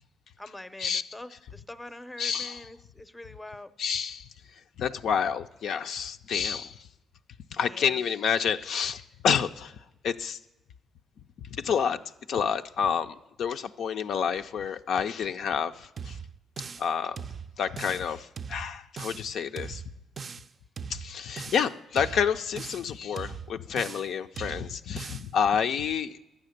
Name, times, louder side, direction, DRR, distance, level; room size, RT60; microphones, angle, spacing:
voice 1, 0.4-3.7 7.6-8.0, left 1 dB, 10° left, 13 dB, 0.6 m, -44 dB
voice 2, 2.2-2.6 3.8-4.3 4.8-6.8 7.5-9.8 10.0-10.4 11.5-12.0 12.3-16.2 16.8-17.2 17.6-19.8 20.9-26.2, left 7 dB, 70° left, 7 dB, 0.4 m, -29 dB
sound 1, 16.0-16.9 17.2-18.1 18.4-19.3 19.6-20.5 20.8-21.7 22.0-22.9 23.2-24.1 24.4-25.3, right 6 dB, 45° right, 0.4 m, -40 dB
11.5 x 8.4 x 6.5 m, 0.96 s
cardioid pair, 90°, 0 cm